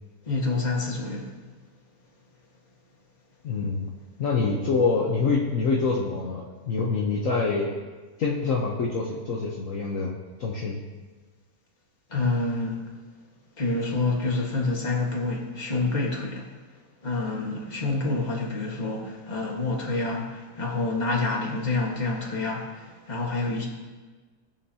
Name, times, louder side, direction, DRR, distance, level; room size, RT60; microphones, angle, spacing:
voice 1, 0.3-1.3 12.1-12.8 13.6-16.5 17.0-23.7, left 3 dB, 25° left, -2 dB, 1.6 m, -27 dB
voice 2, 3.4-3.9 4.2-7.7 8.2-10.8, left 4 dB, 60° left, -3 dB, 1.3 m, -26 dB
18.0 x 7.2 x 2.9 m, 1.4 s
omnidirectional pair, 1.7 m